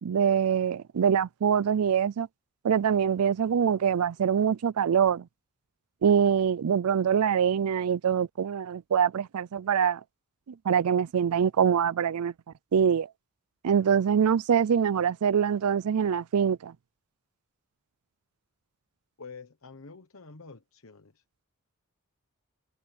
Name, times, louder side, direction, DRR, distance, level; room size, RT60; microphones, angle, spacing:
voice 1, 0.0-2.3 2.6-5.2 6.0-10.0 10.7-12.3 12.7-13.1 13.6-16.7, right 7 dB, 85° right, 0.4 m, -24 dB
voice 2, 19.2-21.4, left 4 dB, 65° left, 1.1 m, -48 dB
head